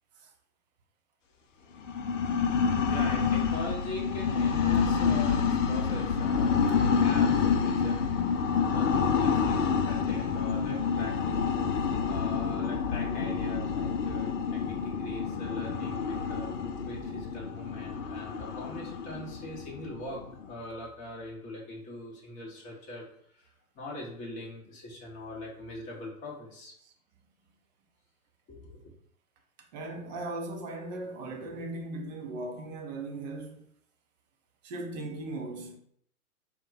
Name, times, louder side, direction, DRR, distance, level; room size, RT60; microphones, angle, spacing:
voice 1, 1.6-11.3 11.6-16.6 16.9-23.1 23.3-26.7 28.5-28.9, left 1 dB, 15° left, 0.8 m, -42 dB
sound 1, 1.8-20.5, left 6 dB, 55° left, 0.5 m, -28 dB
voice 2, 29.7-33.6 34.6-35.8, right 2 dB, 30° right, 0.6 m, -38 dB
4.4 x 2.2 x 3.8 m
figure-of-eight pair, 105°, 44 cm